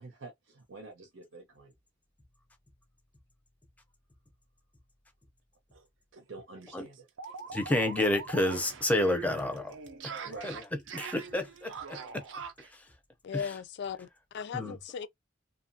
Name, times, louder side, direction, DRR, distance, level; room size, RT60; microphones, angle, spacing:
voice 1, 0.0-1.7 6.2-7.4 10.2-10.5, right 3 dB, 90° right, 0.9 m, -47 dB
sound 1, 5.7-5.8 6.1-6.2 6.6-12.7, right 5 dB, 70° right, 0.5 m, -43 dB
voice 2, 7.5-9.8 10.0-10.5 10.9-12.2 13.3-13.4 14.5-14.8, left 1 dB, 10° left, 0.6 m, -30 dB
voice 3, 13.2-14.1 14.3-15.1, left 7 dB, 60° left, 0.3 m, -37 dB
2.7 x 2.3 x 2.6 m
head